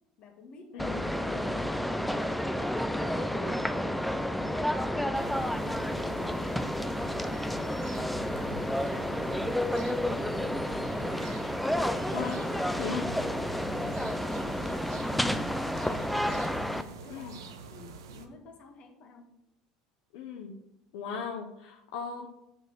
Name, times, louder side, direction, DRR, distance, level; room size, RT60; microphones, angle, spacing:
voice 1, 0.2-4.0 7.8-11.4 12.2-14.1 14.9-16.4 16.7-19.3, left 4 dB, 50° left, 3 dB, 1.8 m, -51 dB
voice 2, 0.7-1.0 12.1-12.4 12.8-13.1 17.1-17.3 20.1-20.5 20.9-22.3, left 7 dB, 75° left, 2 dB, 0.9 m, -37 dB
sound 1, 0.8-16.8, left 1 dB, ahead, 0.6 m, -30 dB
sound 2, 5.1-18.3, right 5 dB, 85° right, 0.8 m, -45 dB
7.7 x 4.4 x 6.3 m, 0.85 s
hypercardioid pair, 75°, 2 cm